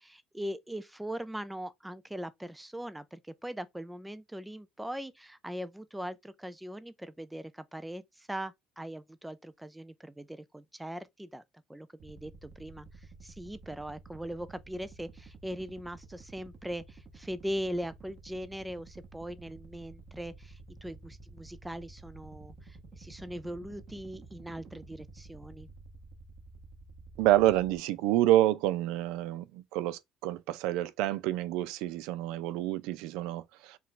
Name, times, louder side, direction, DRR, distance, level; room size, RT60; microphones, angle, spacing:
voice 1, 0.0-11.4 11.7-25.7, equal, 5° right, 0.4 m, -40 dB
sound 1, 12.0-27.8, right 3 dB, 40° right, 1.0 m, -51 dB
voice 2, 27.2-33.8, right 14 dB, 90° right, 0.4 m, -28 dB
4.6 x 2.4 x 3.7 m
cardioid pair, 150°, 0 cm